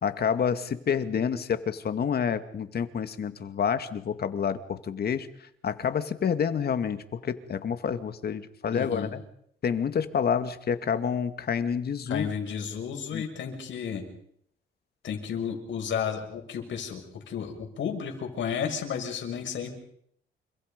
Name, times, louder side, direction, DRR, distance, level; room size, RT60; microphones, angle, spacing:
voice 1, 0.0-5.3 5.6-9.2 9.6-12.3 13.1-13.2, left 7 dB, 50° left, 10 dB, 2.3 m, -28 dB
voice 2, 8.7-9.1 12.1-14.0 15.0-19.8, left 7 dB, 70° left, 3 dB, 6.9 m, -32 dB
29.5 x 26.5 x 5.4 m, 0.69 s
cardioid pair, 90°, 20 cm